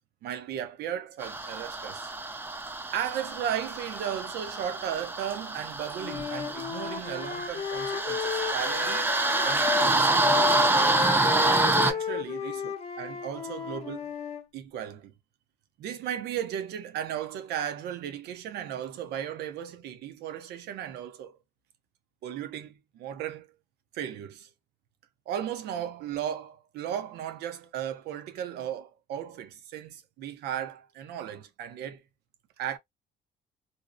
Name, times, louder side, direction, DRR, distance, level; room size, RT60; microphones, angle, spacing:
voice 1, 0.2-2.1 2.9-9.0 9.4-10.5 11.8-14.1 14.5-15.1 15.8-21.4 22.2-23.5 23.9-24.5 25.3-32.0 32.6-32.8, right 10 dB, 80° right, 0.6 m, -36 dB
sound 1, 1.2-11.9, right 2 dB, 10° right, 0.4 m, -27 dB
Wind instrument woodwind instrument, 6.0-9.9 10.2-14.4, left 6 dB, 35° left, 0.7 m, -33 dB
2.7 x 2.0 x 2.4 m
cardioid pair, 110°, 17 cm